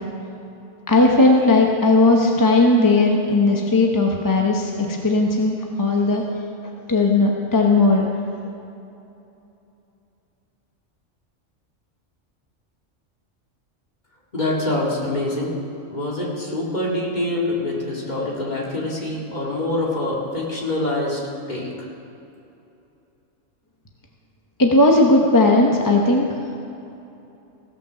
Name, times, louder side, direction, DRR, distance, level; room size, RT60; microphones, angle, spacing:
voice 1, 0.9-6.2 6.9-8.1 24.6-26.3, left 2 dB, 20° left, 0 dB, 0.7 m, -17 dB
voice 2, 14.3-15.5 15.9-21.2 21.5-21.7, left 1 dB, 35° left, -4 dB, 2.3 m, -25 dB
17.0 x 6.0 x 6.8 m, 2.8 s
omnidirectional pair, 1.3 m